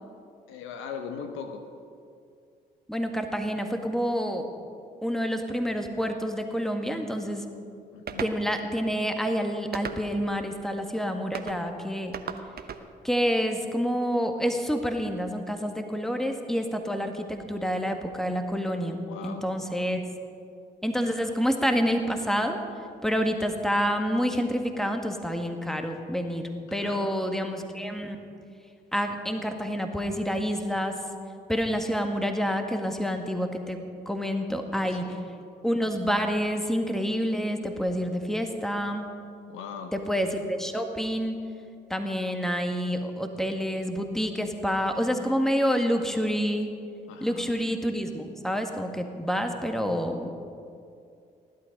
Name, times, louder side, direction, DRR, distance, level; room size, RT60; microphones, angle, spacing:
voice 1, 0.5-1.7 7.9-8.4 19.0-19.6 26.7-27.1 30.7-30.8 34.9-35.2 39.5-39.9 47.1-47.6, left 6 dB, 70° left, 6 dB, 1.0 m, -40 dB
voice 2, 2.9-4.5 5.0-7.4 8.2-12.1 13.0-20.0 20.8-22.6 23.0-26.4 26.7-28.2 28.9-31.0 31.5-33.8 34.1-35.2 35.6-39.1 39.9-41.4 41.9-46.7 47.2-50.3, equal, ahead, 5 dB, 1.7 m, -28 dB
sound 1, 8.1-8.4 9.7-10.3 11.3-11.6 12.1-12.8, right 7 dB, 50° right, 1.0 m, -36 dB
16.0 x 11.5 x 5.3 m, 2.4 s
hypercardioid pair, 40°, 21 cm